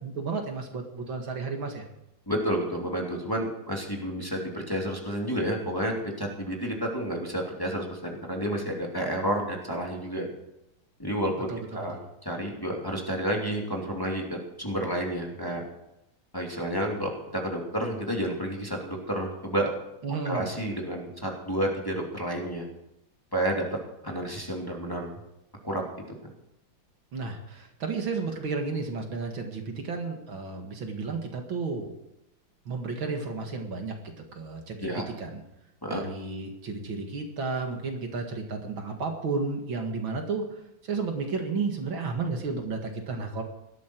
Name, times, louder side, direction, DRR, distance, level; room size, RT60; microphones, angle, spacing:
voice 1, 0.0-1.8 11.5-12.0 20.0-20.5 27.1-31.9 32.7-34.9 35.2-35.4 35.9-40.5 40.8-43.4, right 4 dB, 70° right, 3 dB, 2.7 m, -32 dB
voice 2, 2.3-10.3 11.0-11.3 11.7-11.9 12.2-14.2 14.6-15.6 16.3-19.7 20.2-22.6 23.3-23.6 24.0-25.1 25.6-25.8 34.8-35.0 35.8-36.0, right 1 dB, 10° left, -1 dB, 2.8 m, -30 dB
18.0 x 13.0 x 4.6 m, 0.86 s
omnidirectional pair, 2.3 m